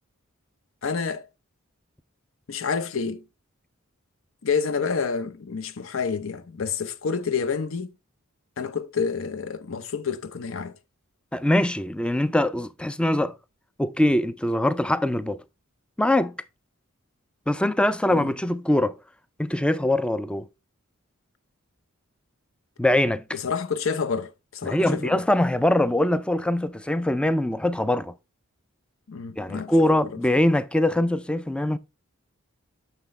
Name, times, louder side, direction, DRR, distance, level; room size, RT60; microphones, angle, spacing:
voice 1, 0.8-1.2 2.5-3.2 4.4-7.9 8.6-10.7 18.1-18.3 23.3-25.2 29.1-30.1, left 5 dB, 65° left, 0.7 m, -28 dB
voice 2, 11.3-13.3 13.8-15.4 16.0-16.3 17.5-19.0 19.4-20.5 22.8-23.2 24.6-28.1 29.4-31.8, left 1 dB, 5° left, 0.3 m, -22 dB
6.6 x 5.9 x 3.2 m
head